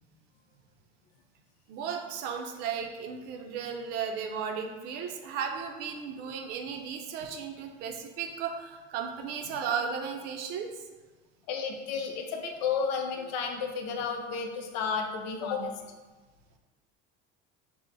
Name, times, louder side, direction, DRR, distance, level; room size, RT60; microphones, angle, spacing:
voice 1, 1.7-10.7, right 7 dB, 50° right, 4 dB, 0.5 m, -35 dB
voice 2, 11.5-15.8, left 5 dB, 90° left, 3 dB, 0.6 m, -32 dB
4.5 x 2.0 x 4.0 m, 1.3 s
cardioid pair, 165°, 21 cm